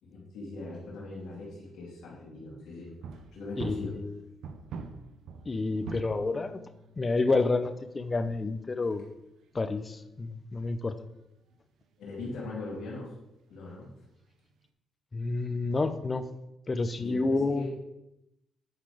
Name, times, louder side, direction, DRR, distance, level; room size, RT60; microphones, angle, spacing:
voice 1, 0.0-2.9 3.3-4.0 12.0-13.1 13.5-13.9 17.0-17.7, left 2 dB, 80° left, -6 dB, 2.7 m, -40 dB
sound 1, 2.9-10.6 10.9-11.1 11.5-11.6 11.8-11.9 12.1-12.2 12.5-12.8 13.4-13.6 14.0-14.1, right 5 dB, 75° right, 0.7 m, -46 dB
voice 2, 3.6-4.2 5.5-6.6 7.0-9.0 9.5-11.0 15.1-16.2 16.7-17.7, left 3 dB, 30° left, 10 dB, 0.6 m, -29 dB
9.3 x 4.1 x 4.9 m, 0.88 s
cardioid pair, 90°, 0 cm